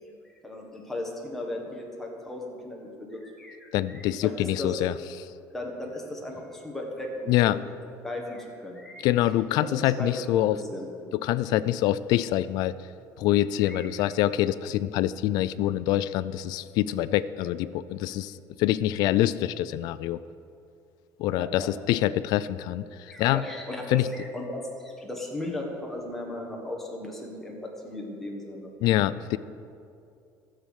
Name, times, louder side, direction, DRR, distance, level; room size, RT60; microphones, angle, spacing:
voice 1, 0.2-4.7 5.5-7.4 8.0-10.1 10.4-10.9 13.6-13.9 21.4-21.7 23.1-28.7, left 1 dB, 5° left, -1 dB, 1.5 m, -37 dB
voice 2, 3.7-5.3 7.3-7.6 9.0-10.6 11.2-12.7 13.2-20.2 21.2-22.8 23.2-23.4 23.9-24.1 28.8-29.4, left 14 dB, 60° left, 16 dB, 0.4 m, -25 dB
12.5 x 7.7 x 6.4 m, 2.5 s
cardioid pair, 170°, 8 cm